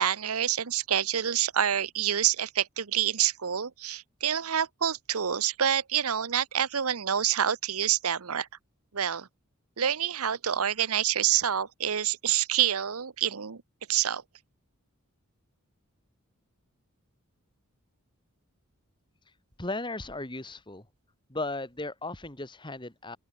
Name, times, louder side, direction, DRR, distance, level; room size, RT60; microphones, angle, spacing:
voice 1, 0.0-8.5 8.9-9.3 9.8-13.6 13.9-14.2, right 9 dB, 80° right, 0.9 m, -27 dB
voice 2, 19.6-20.9 21.3-23.2, left 2 dB, 20° left, 2.4 m, -36 dB
open air
head